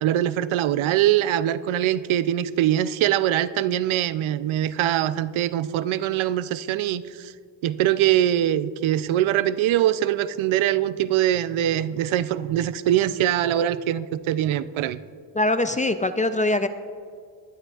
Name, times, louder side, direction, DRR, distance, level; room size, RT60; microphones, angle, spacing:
voice 1, 0.0-7.3 7.6-15.0, right 12 dB, 80° right, 15 dB, 0.6 m, -23 dB
voice 2, 15.3-16.7, left 2 dB, 20° left, 9 dB, 0.3 m, -22 dB
18.0 x 11.5 x 2.4 m, 2.2 s
cardioid pair, 110°, 47 cm